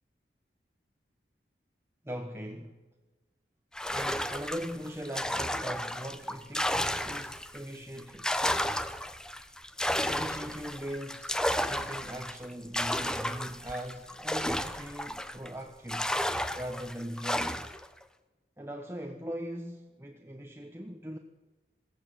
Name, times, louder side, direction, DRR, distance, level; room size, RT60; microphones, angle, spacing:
voice 1, 2.0-2.8 3.9-8.4 10.1-11.4 11.7-16.1 16.5-17.7 18.6-21.2, equal, 15° right, 3 dB, 1.3 m, -40 dB
sound 1, 3.8-7.6 8.0-15.5 15.9-17.9, left 1 dB, 5° left, 0.8 m, -32 dB
21.5 x 16.0 x 9.5 m, 1.2 s
head